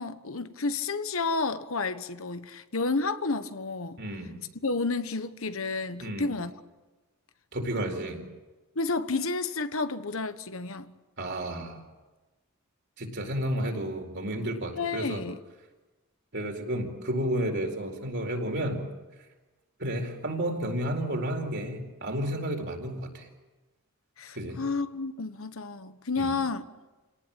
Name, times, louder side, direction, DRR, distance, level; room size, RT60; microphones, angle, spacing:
voice 1, 0.0-4.0 4.6-6.5 8.7-10.9 14.7-15.4 24.2-26.7, left 3 dB, 65° left, 1.2 m, -31 dB
voice 2, 4.0-4.4 6.0-6.3 7.5-8.2 11.2-11.8 13.0-15.2 16.3-18.8 19.8-23.3 24.3-24.6 26.2-26.3, right 1 dB, 50° right, 4.5 m, -31 dB
28.5 x 18.5 x 9.1 m
head